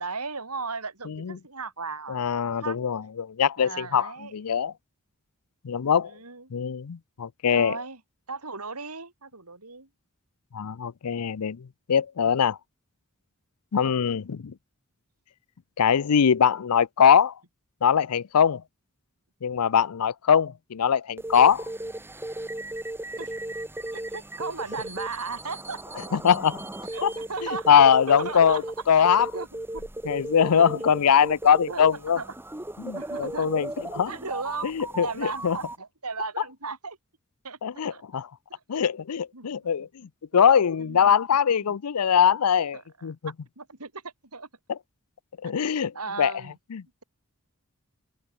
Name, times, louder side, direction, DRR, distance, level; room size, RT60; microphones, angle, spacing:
voice 1, 0.0-2.8 3.6-4.3 6.0-6.5 7.5-8.0 8.3-9.9 23.2-23.3 23.9-26.2 26.9-27.7 28.2-28.6 28.9-29.5 29.7-29.8 30.5-30.7 31.7-31.9 32.2-32.3 32.9-33.5 34.1-34.7 35.0-37.0 37.4-37.6 37.9-38.0 38.5-38.6 39.3-39.9 40.8-41.1 41.6-41.7 42.7-42.8 43.6-44.5 45.7-46.6, right 4 dB, 90° right, 6.4 m, -36 dB
voice 2, 1.1-1.4 2.1-4.7 5.6-6.1 6.5-7.8 10.5-12.6 13.7-14.5 15.8-17.3 17.8-18.6 19.4-21.7 26.1-26.6 27.0-27.1 27.7-29.3 30.0-32.2 32.8-34.1 34.6-35.6 37.6-38.3 38.7-43.3 44.7-44.8 45.4-46.3 46.7-46.8, left 7 dB, 85° left, 0.5 m, -22 dB
sound 1, 21.2-35.8, right 1 dB, 10° right, 1.6 m, -36 dB
head